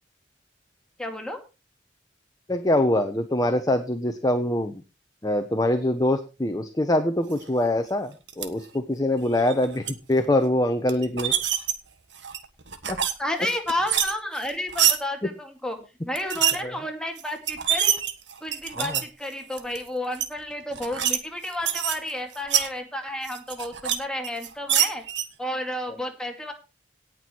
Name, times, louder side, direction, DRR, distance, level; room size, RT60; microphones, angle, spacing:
voice 1, 1.0-1.4 13.2-15.8 16.0-18.0 18.4-25.0 25.4-26.5, left 1 dB, 5° left, 3 dB, 2.3 m, -31 dB
voice 2, 2.5-4.8 5.2-11.3 12.9-13.0 16.6-16.8 18.8-19.0, left 1 dB, 20° left, 7 dB, 1.0 m, -24 dB
sound 1, 8.3-8.5 9.3-9.9 10.9-11.7 12.2-13.1 13.4-15.0 16.2-16.6 17.2-17.3 17.5-19.0 19.5-19.8 20.2-20.3 20.7-21.2 21.4-22.7 23.2-24.0 24.2-25.3, right 10 dB, 75° right, 1.6 m, -25 dB
18.0 x 6.3 x 4.5 m, 0.30 s
head